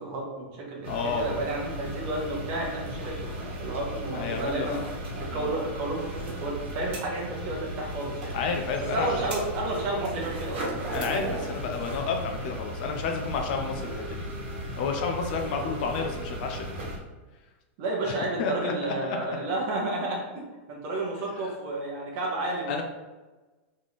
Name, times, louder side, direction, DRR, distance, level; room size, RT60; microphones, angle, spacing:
voice 1, 0.0-4.8 5.2-8.3 8.9-10.9 17.8-20.4 20.7-22.7, right 2 dB, 35° right, -1 dB, 1.0 m, -31 dB
sound 1, 0.8-17.0, equal, 55° right, 1.5 m, -36 dB
voice 2, 0.9-1.4 4.1-4.8 5.3-5.5 8.3-9.2 10.9-14.2 14.8-16.9 18.0-18.1 18.4-19.2 21.4-21.5 22.7-22.8, left 5 dB, 40° left, 3 dB, 0.5 m, -31 dB
3.7 x 3.2 x 4.0 m, 1.2 s
supercardioid pair, 175°, 7 cm